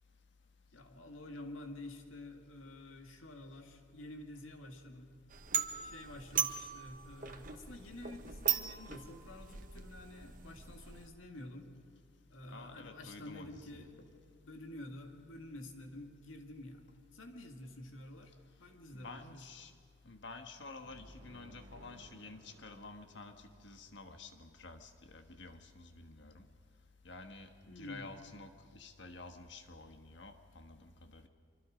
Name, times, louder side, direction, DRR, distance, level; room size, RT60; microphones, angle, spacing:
voice 1, 0.7-5.1 5.8-11.7 12.3-14.1 14.4-18.3 18.6-19.4 27.7-28.1, left 1 dB, 90° left, 4 dB, 2.1 m, -49 dB
sound 1, 5.3-11.1, right 9 dB, 40° right, 1.1 m, -39 dB
voice 2, 12.5-13.9 18.9-19.7 20.0-26.5 27.0-31.3, left 3 dB, 65° left, 6 dB, 1.5 m, -51 dB
sound 2, 20.8-24.5, equal, 75° right, 1.8 m, -59 dB
24.5 x 24.5 x 5.1 m, 2.1 s
head